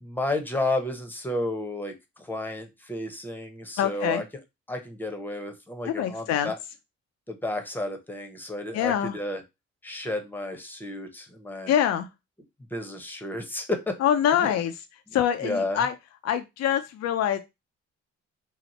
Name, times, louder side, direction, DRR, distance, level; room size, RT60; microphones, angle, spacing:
voice 1, 0.0-4.2 4.7-6.6 7.3-9.4 9.8-11.7 12.7-13.9 14.3-14.6 15.4-15.9, left 2 dB, 5° left, 5 dB, 0.8 m, -32 dB
voice 2, 3.8-4.2 5.9-6.5 8.7-9.1 11.7-12.1 14.0-14.7 15.1-15.9 16.2-17.4, left 9 dB, 60° left, 8 dB, 0.5 m, -24 dB
2.9 x 2.0 x 4.0 m, 0.22 s
cardioid pair, 90°, 30 cm